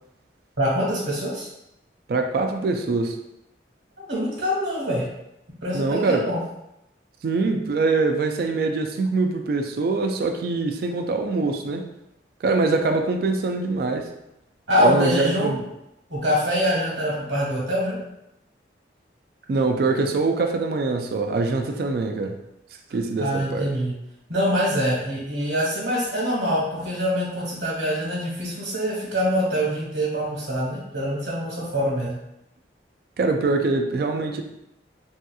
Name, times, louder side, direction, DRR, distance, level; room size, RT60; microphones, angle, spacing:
voice 1, 0.6-1.5 4.0-5.1 5.6-6.4 14.7-15.5 16.1-18.0 23.2-23.9 24.3-32.1, equal, 80° right, -5 dB, 1.3 m, -24 dB
voice 2, 2.1-3.2 5.7-6.3 7.2-11.9 12.4-14.1 14.8-15.7 19.5-22.4 22.9-23.7 33.2-34.4, right 3 dB, 55° right, 5 dB, 0.3 m, -23 dB
3.4 x 2.7 x 2.3 m, 0.84 s
head